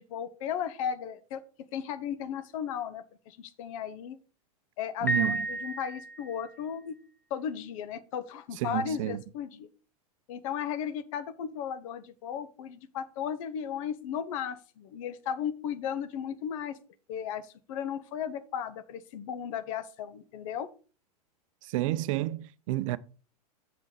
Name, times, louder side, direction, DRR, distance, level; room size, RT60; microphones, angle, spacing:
voice 1, 0.0-1.4 1.7-4.2 4.8-7.0 7.3-9.7 10.3-16.8 17.1-20.7, left 8 dB, 55° left, 0.9 m, -35 dB
voice 2, 5.0-5.4 8.6-9.2 21.6-23.0, right 16 dB, 55° right, 0.6 m, -30 dB
Piano, 5.1-6.5, right 2 dB, 10° left, 0.5 m, -32 dB
7.1 x 5.3 x 4.8 m
hypercardioid pair, 100°, 20 cm